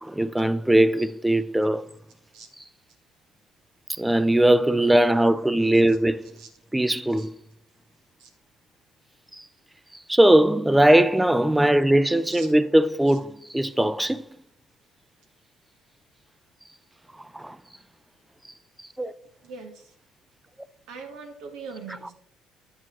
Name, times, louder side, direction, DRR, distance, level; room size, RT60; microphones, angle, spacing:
voice 1, 0.0-1.8 4.0-6.3 6.7-7.3 10.1-14.2 17.3-17.6 19.0-19.1, right 1 dB, 5° right, 0.4 m, -20 dB
voice 2, 19.4-19.9 20.9-22.1, right 5 dB, 80° right, 1.2 m, -41 dB
9.2 x 8.7 x 3.0 m
cardioid pair, 95°, 0 cm